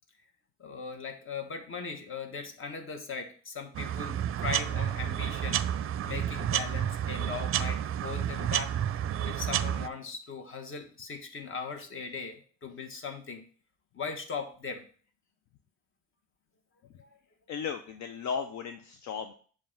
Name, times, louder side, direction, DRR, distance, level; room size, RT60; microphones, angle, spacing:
voice 1, 0.6-5.6 6.1-8.7 9.2-13.4 13.9-14.8 17.0-17.1, left 5 dB, 45° left, 5 dB, 1.2 m, -39 dB
sound 1, 3.7-9.9, right 10 dB, 45° right, 0.4 m, -30 dB
voice 2, 17.5-19.3, left 6 dB, 65° left, 6 dB, 0.6 m, -35 dB
7.4 x 2.5 x 5.7 m, 0.43 s
cardioid pair, 90°, 30 cm